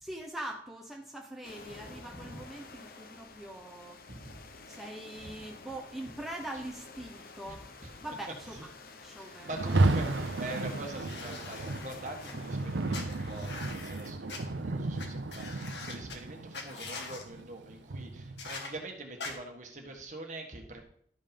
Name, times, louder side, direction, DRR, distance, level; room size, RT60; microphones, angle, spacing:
voice 1, 0.0-4.0 4.7-8.7 9.0-9.5, right 1 dB, ahead, 0 dB, 1.0 m, -43 dB
sound 1, 1.4-13.9, left 3 dB, 50° left, 0.8 m, -50 dB
voice 2, 1.7-2.4 4.1-4.4 7.5-7.9 9.2-20.8, right 2 dB, 40° right, 3 dB, 1.5 m, -44 dB
Rain, 9.5-18.5, right 2 dB, 80° right, 0.6 m, -33 dB
sound 2, 10.9-12.3 12.9-14.4 15.0-15.1 15.3-16.2 16.5-17.2 18.4-18.7 19.2-19.3, left 4 dB, 70° left, 1.8 m, -43 dB
12.5 x 5.4 x 5.3 m, 0.64 s
head